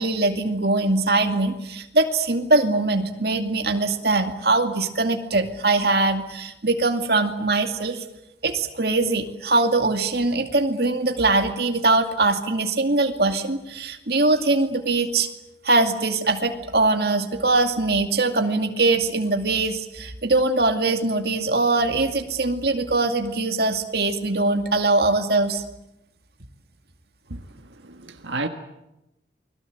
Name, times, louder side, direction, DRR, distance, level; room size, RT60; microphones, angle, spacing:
voice 1, 0.0-8.0 8.4-15.3 15.6-25.6, right 2 dB, 60° right, 2.4 m, -22 dB
voice 2, 27.8-28.5, right 3 dB, 85° right, 1.7 m, -31 dB
29.0 x 21.5 x 7.9 m
head